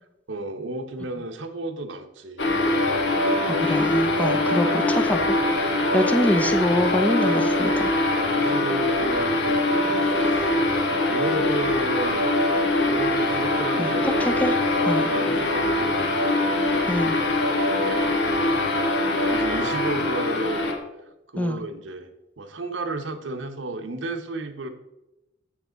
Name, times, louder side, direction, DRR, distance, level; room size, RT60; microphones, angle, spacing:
voice 1, 0.3-2.5 3.6-3.8 4.4-4.7 5.8-6.0 8.3-9.6 9.9-12.2 12.9-14.2 15.0-16.0 17.8-18.7 19.2-20.6 21.3-22.1 22.4-24.7, right 2 dB, 75° right, 7 dB, 0.8 m, -33 dB
sound 1, 2.4-20.8, left 2 dB, 70° left, 1.2 m, -23 dB
voice 2, 3.5-5.2 5.5-8.0 13.8-14.6 14.9-15.1 16.9-17.2 21.4-21.6, left 1 dB, 10° left, 7 dB, 0.5 m, -25 dB
7.3 x 7.1 x 3.9 m, 0.94 s
head